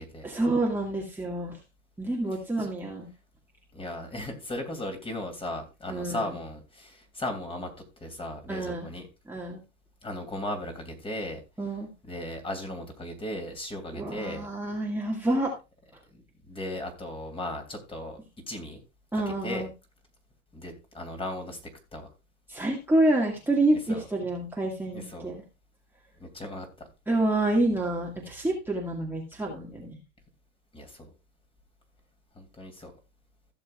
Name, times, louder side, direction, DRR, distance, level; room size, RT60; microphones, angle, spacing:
voice 1, 0.2-1.6 2.0-3.1 5.9-6.2 8.5-8.9 9.3-9.6 11.6-11.9 13.9-15.5 19.1-19.7 22.5-25.4 27.1-29.9, right 2 dB, 5° right, -2 dB, 2.1 m, -27 dB
voice 2, 2.3-2.7 3.7-7.7 8.0-9.1 10.0-14.5 16.1-18.2 18.5-18.8 19.1-19.7 20.5-21.6 21.9-22.1 23.7-24.0 24.9-25.3 26.2-26.9 30.7-31.1 32.3-32.9, left 1 dB, 15° left, 4 dB, 2.9 m, -37 dB
16.0 x 6.9 x 2.4 m, 0.27 s
hypercardioid pair, 100°, 36 cm